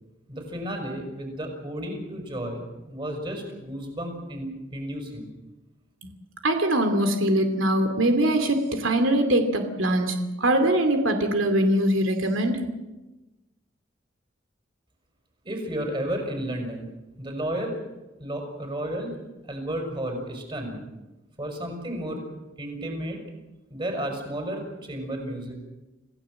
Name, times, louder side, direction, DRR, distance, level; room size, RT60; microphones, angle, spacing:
voice 1, 0.3-5.3 15.4-16.9 17.2-17.7 18.2-19.1 19.4-20.8 21.4-22.2 22.6-23.2 23.7-25.5, right 1 dB, 25° right, 3 dB, 5.9 m, -32 dB
voice 2, 6.4-12.6, right 1 dB, 90° right, 6 dB, 2.8 m, -22 dB
28.0 x 16.5 x 7.8 m, 1.1 s
head